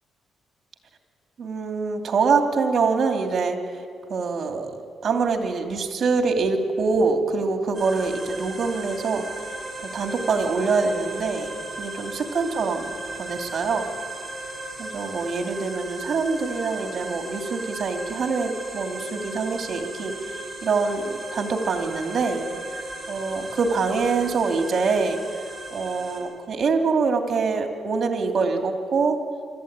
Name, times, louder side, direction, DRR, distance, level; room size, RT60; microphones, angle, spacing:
voice 1, 1.4-3.6 4.1-9.2 9.8-11.5 11.8-13.9 14.8-22.5 23.1-25.2 25.7-29.2, right 4 dB, 50° right, 4 dB, 2.7 m, -25 dB
sound 1, 7.7-26.2, right 2 dB, 20° right, 7.6 m, -36 dB
25.5 x 13.0 x 8.9 m, 2.2 s
cardioid pair, 90°, 0 cm